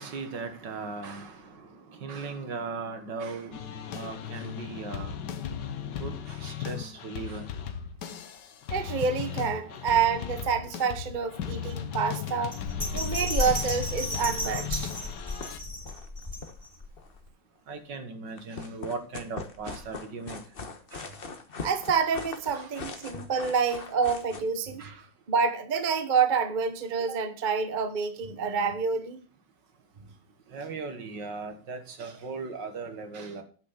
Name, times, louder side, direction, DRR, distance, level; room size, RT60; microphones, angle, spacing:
voice 1, 0.0-1.4 2.0-3.6 3.9-5.2 6.0-7.4 17.7-20.4 20.9-21.1 22.6-22.7 24.8-25.0 30.5-33.4, right 4 dB, 60° right, 2.0 m, -38 dB
sound 1, 3.5-15.6, left 8 dB, 65° left, 1.5 m, -36 dB
voice 2, 8.7-12.5 12.9-14.9 21.6-24.8 25.3-29.2, right 6 dB, 35° right, 0.8 m, -28 dB
Bell, 12.5-16.9 17.3-17.4, left 2 dB, 15° left, 3.9 m, -33 dB
sound 2, 14.4-15.1 15.4-15.5 15.8-17.2 18.3-24.4, left 4 dB, 35° left, 1.1 m, -41 dB
9.4 x 6.3 x 7.2 m
omnidirectional pair, 2.2 m